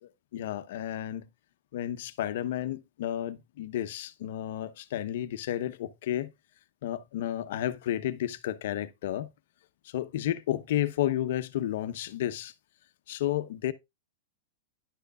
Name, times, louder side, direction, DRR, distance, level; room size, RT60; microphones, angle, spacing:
voice 1, 0.3-1.3 1.7-6.3 6.8-9.3 9.8-12.5 13.1-13.7, left 12 dB, 65° left, 0.9 m, -32 dB
11.0 x 6.6 x 2.4 m
hypercardioid pair, 140°, 0 cm